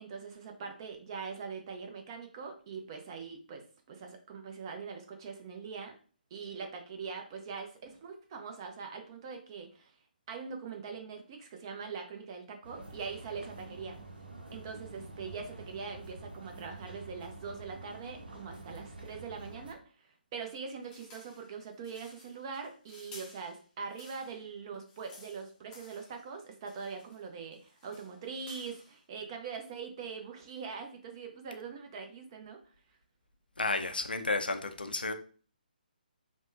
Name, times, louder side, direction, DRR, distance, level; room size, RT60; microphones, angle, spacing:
voice 1, 0.0-5.9 6.3-9.9 10.3-14.0 14.5-32.7, right 5 dB, 30° right, 4 dB, 0.5 m, -42 dB
sound 1, 12.6-19.7, right 2 dB, 75° right, 0.7 m, -48 dB
sound 2, 20.8-24.4 24.7-26.3 26.6-27.2 27.5-29.0, left 3 dB, 15° left, 0.6 m, -55 dB
voice 2, 33.6-35.1, left 3 dB, 80° left, 7 dB, 0.4 m, -32 dB
3.4 x 2.1 x 2.6 m, 0.41 s
figure-of-eight pair, 140°, 5 cm